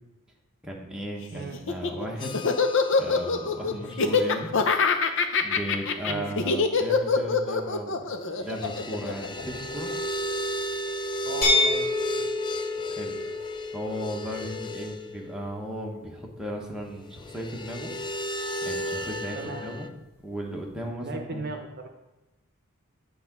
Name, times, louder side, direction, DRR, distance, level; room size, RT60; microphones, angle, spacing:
voice 1, 0.6-2.4 3.0-4.5 5.4-9.9 12.9-13.2 13.7-17.9 18.6-19.9 20.2-21.5, equal, 5° right, -2 dB, 1.2 m, -36 dB
Laughter, 1.5-9.9, left 4 dB, 60° left, 0.7 m, -24 dB
sound 1, 2.2-4.4 4.7-4.9 8.4-15.2 17.1-19.9, equal, 20° left, 0.4 m, -35 dB
voice 2, 11.2-11.9 12.2-12.3 19.3-19.6 21.0-21.9, right 3 dB, 50° right, 4 dB, 0.8 m, -36 dB
sound 2, 11.4-17.2, left 3 dB, 45° left, 2.6 m, -30 dB
9.0 x 3.9 x 6.0 m, 1.1 s
head